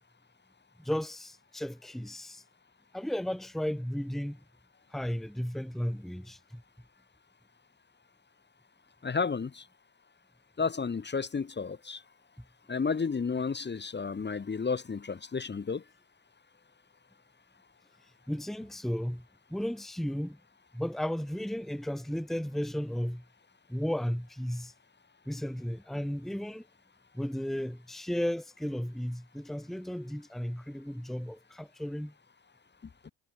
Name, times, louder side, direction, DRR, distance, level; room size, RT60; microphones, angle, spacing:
voice 1, 0.8-2.4 2.9-4.4 4.9-6.6 18.3-19.2 19.5-20.4 20.7-23.2 23.7-24.7 25.2-26.7 27.1-32.1, equal, ahead, 1.4 m, -34 dB
voice 2, 9.0-9.6 10.6-12.0 12.7-15.8, left 5 dB, 25° left, 1.6 m, -32 dB
hypercardioid pair, 65°, 43 cm